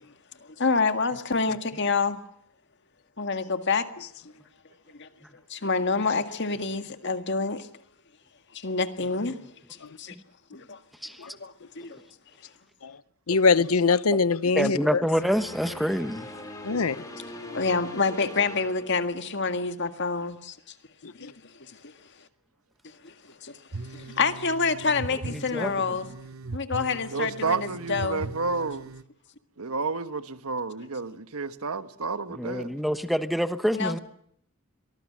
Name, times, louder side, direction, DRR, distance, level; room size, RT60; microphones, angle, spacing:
voice 1, 0.4-2.2 3.2-3.9 4.2-4.3 4.9-5.1 5.5-7.7 8.5-9.4 9.7-10.2 10.5-10.8 11.2-12.0 16.9-17.0 17.5-20.7 21.1-21.9 23.0-23.6 23.9-26.1 26.5-28.3 33.7-34.0, left 4 dB, 55° left, 1.8 m, -28 dB
voice 2, 13.3-15.0 16.6-17.0 17.4-17.6 21.0-21.3, left 4 dB, 80° left, 0.8 m, -23 dB
voice 3, 14.5-16.3 25.2-25.7 32.3-34.0, equal, ahead, 1.1 m, -27 dB
sound 1, 15.1-19.6, left 1 dB, 15° left, 5.8 m, -42 dB
sound 2, 23.7-29.0, right 3 dB, 65° right, 1.0 m, -39 dB
voice 4, 27.1-28.9 29.6-32.7, right 4 dB, 85° right, 1.4 m, -30 dB
23.5 x 20.0 x 7.5 m
head